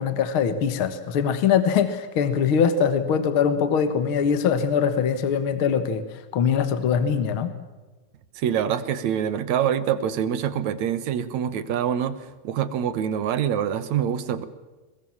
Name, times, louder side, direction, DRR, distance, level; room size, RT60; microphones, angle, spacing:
voice 1, 0.0-6.0 6.3-7.5, left 7 dB, 50° left, 10 dB, 1.7 m, -22 dB
voice 2, 8.4-12.2 12.4-14.5, right 9 dB, 65° right, 13 dB, 2.3 m, -25 dB
22.5 x 21.5 x 7.2 m, 1.2 s
omnidirectional pair, 4.0 m